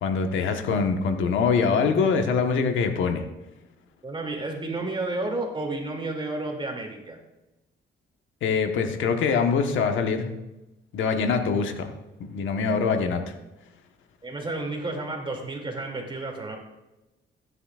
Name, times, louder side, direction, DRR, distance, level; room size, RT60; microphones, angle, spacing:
voice 1, 0.0-3.2 8.4-10.3 10.9-11.9 12.2-13.3, left 5 dB, 75° left, 5 dB, 1.3 m, -24 dB
voice 2, 4.0-7.2 14.2-16.6, right 2 dB, 25° right, 1 dB, 2.7 m, -31 dB
15.5 x 9.8 x 2.5 m, 1.0 s
cardioid pair, 90°, 20 cm